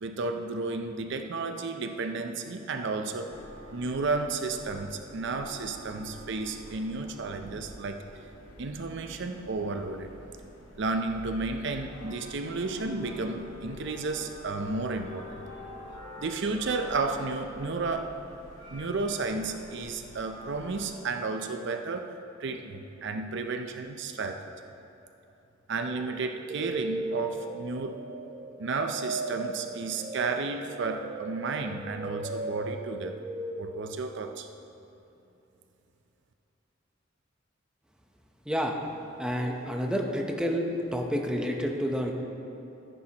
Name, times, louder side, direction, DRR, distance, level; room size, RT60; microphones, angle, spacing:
voice 1, 0.0-3.4 3.7-8.0 8.6-10.1 10.8-15.3 16.2-18.2 18.7-22.1 22.4-24.4 25.7-28.0 28.6-33.2 33.6-34.5, right 3 dB, 65° right, 6 dB, 0.6 m, -32 dB
sound 1, 3.3-20.9, left 1 dB, 70° left, 2.2 m, -46 dB
sound 2, 25.8-34.1, right 2 dB, 40° right, 1.0 m, -37 dB
voice 2, 39.2-40.7 40.9-42.1, equal, 5° right, 1 dB, 0.8 m, -29 dB
14.0 x 10.0 x 2.9 m, 2.9 s
head